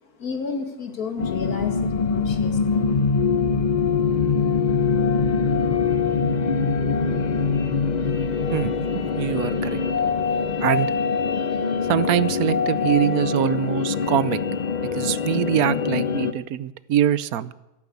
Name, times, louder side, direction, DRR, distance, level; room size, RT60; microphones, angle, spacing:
voice 1, 0.2-2.8, left 5 dB, 85° left, 7 dB, 2.4 m, -32 dB
sound 1, 1.2-16.3, left 5 dB, 40° left, 0.7 m, -23 dB
voice 2, 8.5-9.8 10.6-10.9 11.9-14.6 14.9-17.5, right 11 dB, 80° right, 17 dB, 1.2 m, -24 dB
13.0 x 12.5 x 8.3 m, 0.97 s
omnidirectional pair, 1.5 m